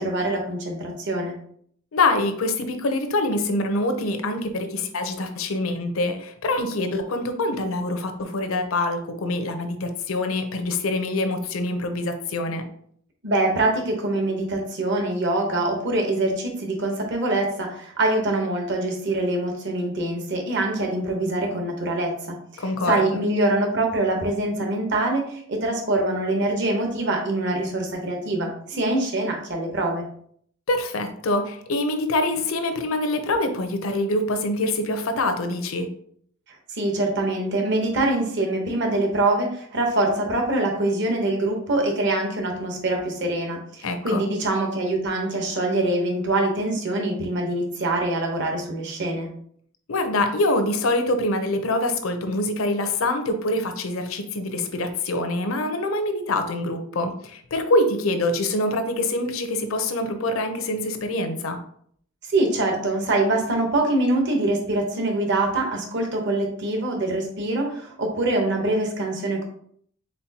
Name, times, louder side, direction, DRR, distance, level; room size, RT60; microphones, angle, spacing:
voice 1, 0.0-1.4 13.2-30.1 36.7-49.3 62.3-69.4, right 2 dB, 60° right, 2 dB, 0.9 m, -24 dB
voice 2, 1.9-12.7 22.6-23.2 30.7-35.9 43.8-44.2 49.9-61.6, left 2 dB, 80° left, 7 dB, 0.6 m, -25 dB
4.3 x 3.8 x 2.8 m, 0.63 s
head